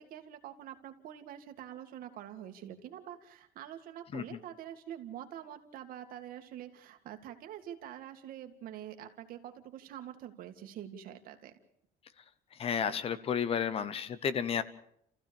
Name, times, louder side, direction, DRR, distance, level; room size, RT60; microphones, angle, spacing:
voice 1, 0.0-11.5, right 11 dB, 65° right, 6 dB, 2.1 m, -46 dB
voice 2, 12.6-14.6, left 7 dB, 35° left, 15 dB, 0.9 m, -32 dB
30.0 x 15.0 x 7.1 m, 0.73 s
cardioid pair, 165°, 16 cm